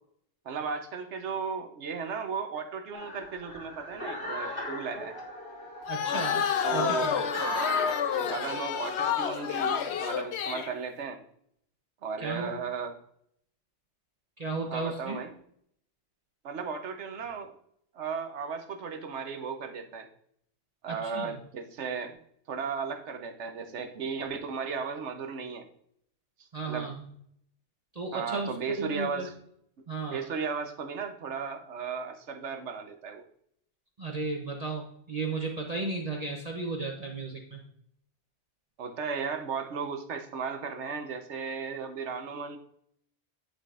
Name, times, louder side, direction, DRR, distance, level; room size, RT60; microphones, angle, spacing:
voice 1, 0.4-5.2 6.6-7.1 7.4-11.2 12.0-12.9 14.7-15.3 16.4-17.5 17.9-20.1 20.8-22.2 22.5-25.6 26.6-26.9 28.1-29.3 30.0-33.2 38.8-42.6, right 5 dB, 75° right, 6 dB, 1.2 m, -35 dB
sound 1, 2.9-8.7, left 1 dB, 50° left, 1.8 m, -39 dB
sound 2, 5.9-10.7, left 7 dB, 70° left, 0.9 m, -29 dB
voice 2, 5.9-6.5 6.7-7.1 12.2-12.5 14.4-15.2 20.9-21.3 26.5-26.9 28.0-28.5 28.8-29.3 29.9-30.2 34.0-34.8 35.1-37.6, right 3 dB, 35° right, 0 dB, 0.9 m, -34 dB
10.5 x 5.0 x 2.5 m, 0.68 s
omnidirectional pair, 1.2 m